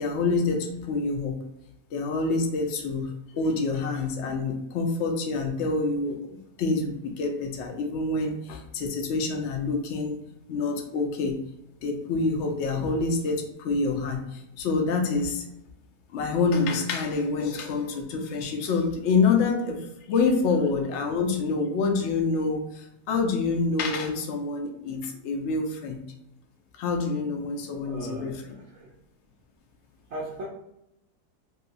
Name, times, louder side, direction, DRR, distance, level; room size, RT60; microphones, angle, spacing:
voice 1, 0.0-1.4 1.9-3.1 3.3-10.2 10.5-11.3 11.8-15.5 16.1-26.0 26.8-28.5, left 4 dB, 65° left, 3 dB, 0.7 m, -27 dB
voice 2, 27.9-28.9 30.1-30.5, right 1 dB, 70° right, -3 dB, 0.6 m, -38 dB
3.2 x 2.7 x 2.5 m, 0.84 s
omnidirectional pair, 1.8 m